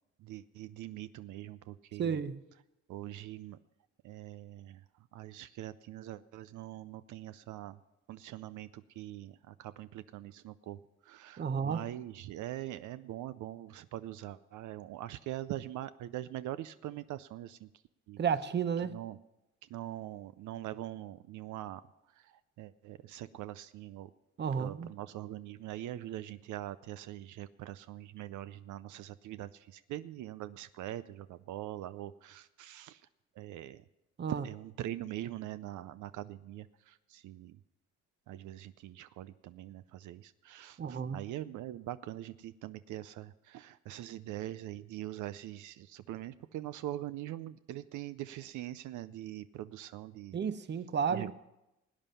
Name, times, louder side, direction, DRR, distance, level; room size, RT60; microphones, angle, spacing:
voice 1, 0.2-2.2 2.9-3.6 4.0-4.8 5.1-7.8 8.1-10.8 11.0-17.7 18.1-18.2 18.8-19.2 19.7-21.8 22.2-24.1 24.6-33.0 33.4-33.8 34.3-37.6 38.3-50.4 51.1-51.3, right 13 dB, 75° right, 0.5 m, -43 dB
voice 2, 2.0-2.4 11.4-11.8 18.2-18.9 24.4-24.9 34.2-34.4 40.8-41.2 50.3-51.3, right 7 dB, 35° right, 0.7 m, -32 dB
18.0 x 9.1 x 5.5 m
cardioid pair, 90°, 30 cm